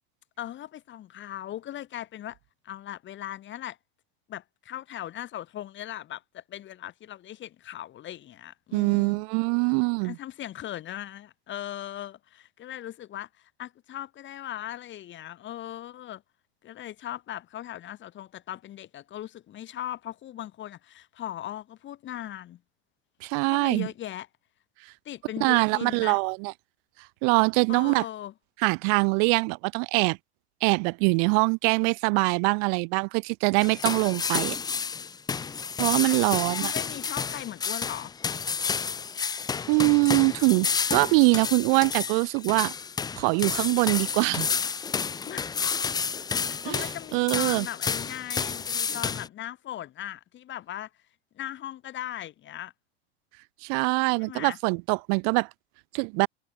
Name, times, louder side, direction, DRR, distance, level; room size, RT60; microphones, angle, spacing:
voice 1, 0.4-2.4 2.6-3.8 4.3-9.2 10.0-16.2 16.6-22.6 23.5-24.3 25.0-26.2 27.7-28.3 36.0-38.1 45.3-45.6 46.5-50.9 51.3-52.7 54.2-54.6, left 12 dB, 35° left, 2.6 m, -39 dB
voice 2, 8.7-10.2 23.2-23.9 25.4-26.5 27.2-28.0 28.6-30.2 30.6-34.6 35.8-36.7 39.7-42.7 43.2-44.5 46.6-47.7 53.6-55.5 55.9-56.3, right 40 dB or more, 45° right, 0.6 m, -23 dB
sound 1, 33.6-49.3, left 6 dB, 10° left, 0.6 m, -30 dB
figure-of-eight pair, 85°, 33 cm